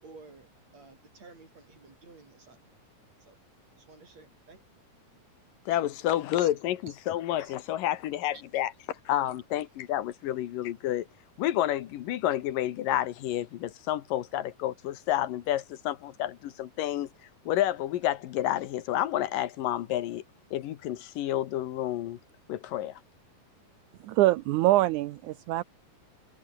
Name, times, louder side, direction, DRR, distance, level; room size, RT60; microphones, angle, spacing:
voice 1, 0.0-2.6 3.2-3.4 3.8-4.6 6.4-6.5 6.9-7.0 7.4-7.5 8.3-8.4 9.1-9.2, right 3 dB, 50° right, 7.4 m, -52 dB
voice 2, 5.7-8.7 9.1-11.0 11.4-17.1 17.5-20.2 20.5-22.2 22.5-23.0, left 13 dB, 75° left, 2.8 m, -30 dB
voice 3, 24.0-25.6, right 16 dB, 75° right, 2.0 m, -24 dB
omnidirectional pair, 3.9 m